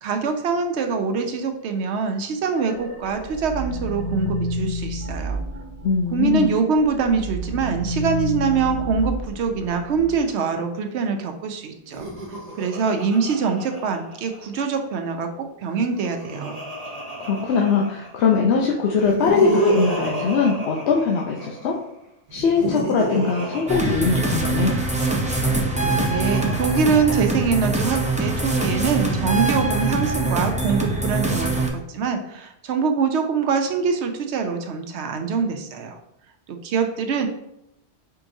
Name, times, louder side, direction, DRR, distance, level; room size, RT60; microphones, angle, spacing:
voice 1, 0.0-5.4 6.1-12.1 12.6-16.6 26.1-36.0 36.5-37.3, right 5 dB, 80° right, 5 dB, 0.9 m, -24 dB
sound 1, 2.5-6.5 6.8-10.2, equal, 15° left, 1.5 m, -30 dB
voice 2, 5.8-6.5 17.2-21.8 22.3-24.7, left 5 dB, 75° left, -1 dB, 0.9 m, -21 dB
Laughter, 11.8-14.6 15.7-18.3 18.9-21.7 22.3-24.7 25.6-27.7, right 1 dB, 35° right, 0.9 m, -30 dB
sound 2, 23.7-31.7, right 2 dB, 10° right, 0.3 m, -23 dB
4.7 x 3.7 x 2.6 m, 0.84 s
omnidirectional pair, 1.2 m